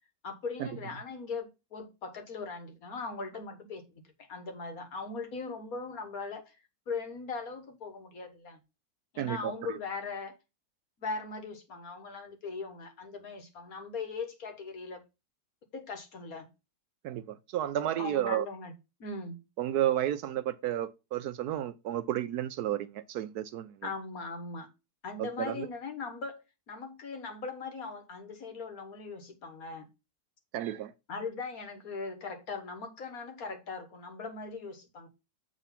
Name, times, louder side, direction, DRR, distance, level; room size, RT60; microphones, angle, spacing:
voice 1, 0.2-4.0 4.3-6.6 6.9-8.6 9.1-10.4 11.0-15.0 15.7-16.5 18.0-18.7 19.0-19.4 23.8-24.7 25.0-29.9 31.1-35.1, left 4 dB, 60° left, 1.8 m, -39 dB
voice 2, 9.2-9.8 17.0-18.5 19.6-23.9 25.2-25.7 30.5-30.9, right 12 dB, 70° right, 1.0 m, -32 dB
7.5 x 3.7 x 5.7 m
omnidirectional pair, 1.8 m